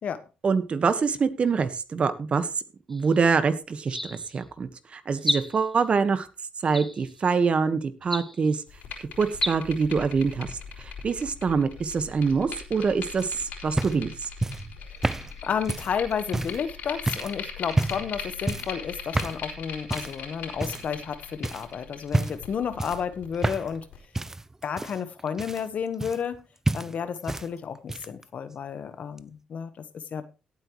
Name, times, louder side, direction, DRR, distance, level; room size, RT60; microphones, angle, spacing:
voice 1, 0.4-2.5 2.9-6.3 6.6-8.6 9.2-10.5 10.8-14.3, right 5 dB, 45° right, 1.5 m, -25 dB
sound 1, 2.9-3.2 3.8-4.4 5.2-5.8 6.7-7.3 8.0-8.6 9.3-9.6, left 1 dB, 10° left, 1.2 m, -31 dB
sound 2, 8.7-24.0, left 6 dB, 80° left, 4.4 m, -40 dB
sound 3, 13.2-16.6 17.1-17.3 17.7-18.1 18.5-18.8 19.1-19.4 19.9-20.2 20.6-21.1 21.4-21.7 22.1-22.5 22.8-23.8 24.1-26.4 26.6-27.5 27.7-28.2 29.2-29.3, right 2 dB, 15° right, 0.6 m, -29 dB
voice 2, 15.4-23.9 24.6-26.4 26.7-30.2, left 7 dB, 60° left, 1.3 m, -31 dB
17.0 x 8.4 x 3.2 m
cardioid pair, 90°, 3 cm